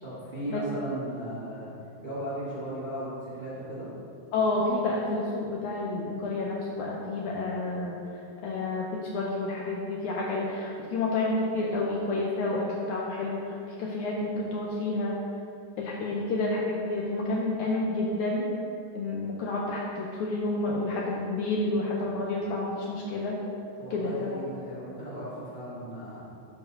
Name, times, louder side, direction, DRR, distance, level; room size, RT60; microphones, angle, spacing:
voice 1, 0.0-1.7 2.0-3.9 23.8-26.2, right 1 dB, 50° right, -10 dB, 0.5 m, -36 dB
voice 2, 4.3-8.0 8.4-15.2 15.8-18.5 18.9-23.4 23.9-24.4, left 2 dB, 90° left, -3 dB, 1.7 m, -29 dB
11.5 x 5.1 x 2.6 m, 2.6 s
omnidirectional pair, 4.1 m